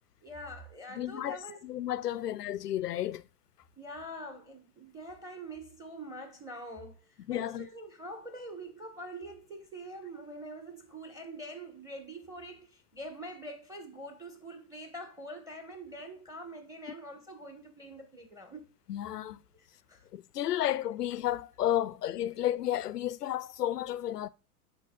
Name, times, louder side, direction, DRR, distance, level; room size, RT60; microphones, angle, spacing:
voice 1, 0.2-1.6 3.8-18.7 19.5-20.0 22.3-22.4, right 1 dB, 10° right, 1.4 m, -45 dB
voice 2, 0.9-1.4 1.6-3.2 7.3-7.7 18.9-19.4 20.1-24.3, left 12 dB, 85° left, 0.6 m, -32 dB
11.5 x 4.0 x 2.4 m
hypercardioid pair, 95°, 46 cm